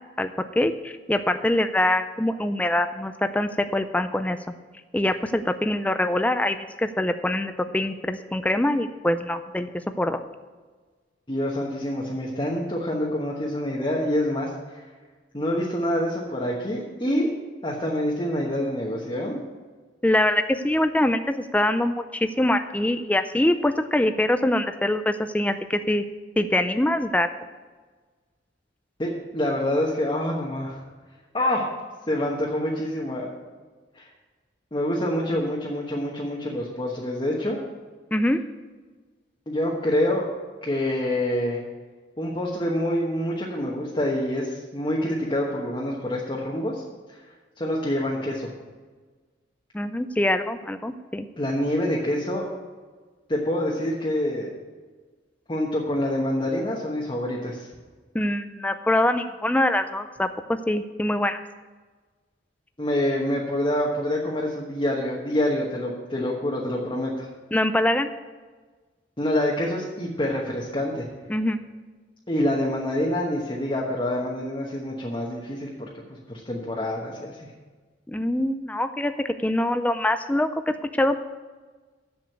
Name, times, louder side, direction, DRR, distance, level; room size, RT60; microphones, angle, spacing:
voice 1, 0.6-4.4 4.9-9.7 10.0-10.2 20.0-26.0 26.4-27.3 38.1-38.4 49.7-51.3 58.1-60.3 60.7-61.4 67.5-68.1 71.3-71.6 78.1-81.2, left 1 dB, 10° left, 9 dB, 0.4 m, -24 dB
voice 2, 11.3-14.8 15.3-17.3 17.6-19.4 29.0-30.8 31.3-31.6 32.1-33.3 33.9-34.0 34.7-37.6 39.5-40.3 40.6-41.6 42.2-46.8 47.1-47.2 47.6-48.5 51.4-52.4 53.3-54.5 55.5-57.7 62.8-67.3 69.2-71.1 72.3-75.7 76.1-77.5, left 1 dB, 25° left, -3 dB, 1.2 m, -26 dB
7.6 x 7.4 x 7.9 m, 1.4 s
head